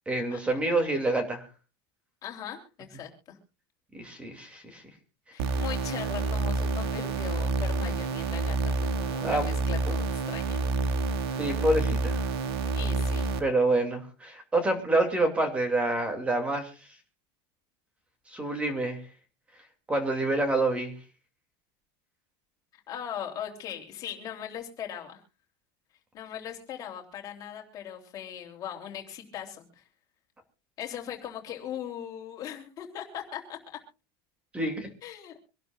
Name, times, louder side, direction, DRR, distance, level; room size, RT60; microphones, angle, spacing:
voice 1, 0.1-1.4 3.9-4.8 9.2-9.5 11.4-12.3 13.4-16.7 18.3-19.0 19.9-20.9 34.5-34.9, right 2 dB, 10° right, 6 dB, 2.6 m, -27 dB
voice 2, 2.2-3.4 5.3-10.6 12.7-13.3 22.9-25.2 26.1-29.8 30.8-33.8 35.0-35.4, left 9 dB, 30° left, 2 dB, 3.2 m, -39 dB
sound 1, 5.4-13.4, right 3 dB, 85° right, 2.1 m, -28 dB
25.5 x 12.0 x 2.5 m, 0.34 s
supercardioid pair, 170°, 13 cm